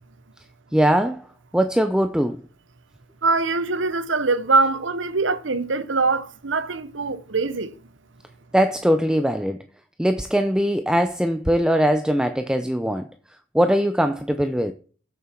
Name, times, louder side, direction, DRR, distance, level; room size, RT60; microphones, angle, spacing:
voice 1, 0.7-1.3 1.5-2.4 8.5-9.6 10.0-13.1 13.5-14.7, equal, 5° right, 0.6 m, -21 dB
voice 2, 3.2-7.7, right 3 dB, 80° right, 1.0 m, -23 dB
14.0 x 7.6 x 4.5 m
head